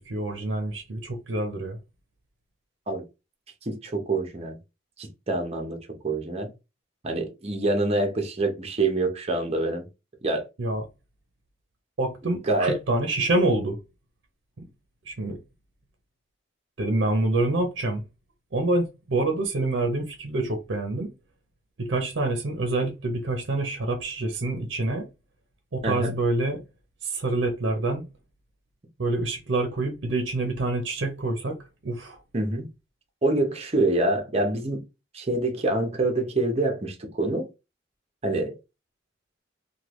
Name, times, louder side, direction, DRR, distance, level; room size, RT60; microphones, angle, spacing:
voice 1, 0.0-1.8 10.6-10.8 12.0-13.8 14.6-14.7 15.1-15.4 16.8-18.0 18.5-21.1 21.8-25.1 25.7-26.6 27.0-28.1 29.0-32.2, right 2 dB, 65° right, 0.6 m, -27 dB
voice 2, 3.7-4.6 5.0-5.8 6.0-6.5 7.0-9.8 10.2-10.4 12.3-12.7 25.8-26.1 32.3-32.7 33.2-34.8 35.1-37.5 38.2-38.6, right 2 dB, 35° right, 0.7 m, -26 dB
3.2 x 2.2 x 3.0 m
head